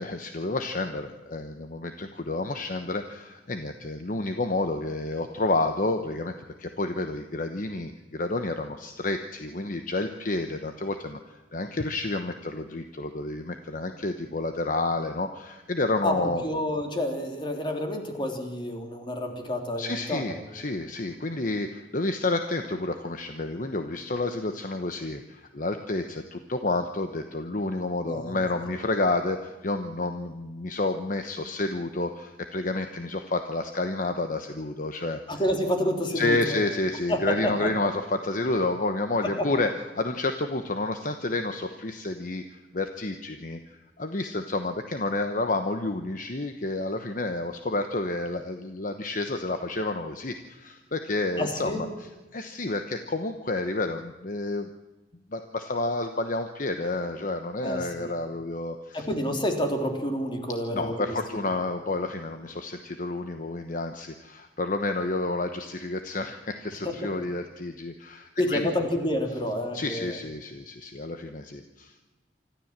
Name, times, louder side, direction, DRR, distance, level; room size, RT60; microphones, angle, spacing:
voice 1, 0.0-6.3 6.6-16.4 19.8-35.2 36.1-39.7 39.9-43.6 44.0-51.9 52.3-54.7 55.3-59.1 60.7-68.8 69.7-71.9, left 2 dB, 50° left, 6 dB, 1.1 m, -30 dB
voice 2, 16.0-20.4 28.1-28.4 35.3-36.6 37.1-37.7 39.2-39.5 51.4-51.9 57.6-58.1 58.9-61.5 66.8-67.1 68.4-70.2, left 1 dB, 30° left, 3 dB, 3.3 m, -29 dB
25.5 x 13.5 x 7.4 m, 1.2 s
head